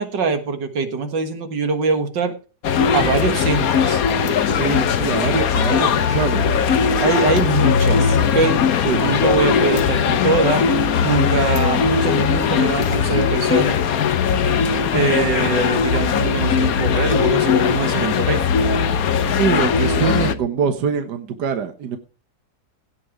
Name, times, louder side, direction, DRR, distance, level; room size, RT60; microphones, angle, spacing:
voice 1, 0.0-2.3 2.9-4.0 7.0-8.6 9.0-10.7 11.0-13.8 14.9-18.4, right 4 dB, 90° right, 2.3 m, -22 dB
sound 1, 2.6-20.3, left 7 dB, 60° left, 1.3 m, -19 dB
voice 2, 4.5-6.6 8.8-9.0 19.3-22.0, right 6 dB, 70° right, 1.7 m, -23 dB
16.5 x 5.9 x 4.8 m
omnidirectional pair, 1.9 m